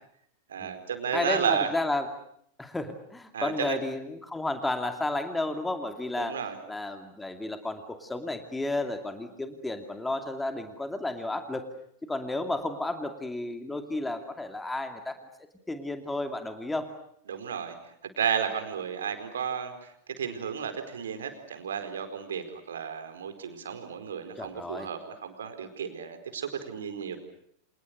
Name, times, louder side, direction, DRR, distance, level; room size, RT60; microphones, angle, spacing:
voice 1, 0.5-1.7 3.3-3.8 6.2-6.6 17.3-17.7 18.2-19.9 20.2-27.2, right 7 dB, 65° right, 8 dB, 4.7 m, -32 dB
voice 2, 1.1-2.1 2.6-6.4 6.7-11.7 12.1-15.2 15.7-16.9 24.4-24.9, left 2 dB, 10° left, 7 dB, 2.5 m, -32 dB
30.0 x 27.5 x 6.6 m, 0.68 s
figure-of-eight pair, 90°, 0 cm